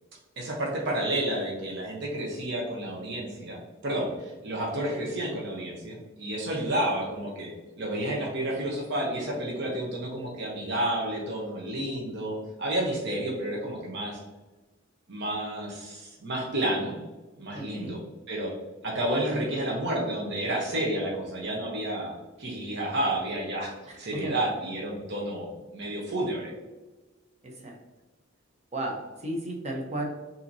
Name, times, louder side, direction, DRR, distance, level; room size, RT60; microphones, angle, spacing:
voice 1, 0.4-7.5 7.8-14.2 15.1-17.0 17.4-18.0 18.3-18.5 18.8-26.5, right 1 dB, 60° right, -2 dB, 0.9 m, -30 dB
voice 2, 17.5-17.9 23.9-24.3 27.4-27.8 28.7-30.0, right 1 dB, 35° right, 0 dB, 0.9 m, -34 dB
5.7 x 2.9 x 2.7 m, 1.2 s
head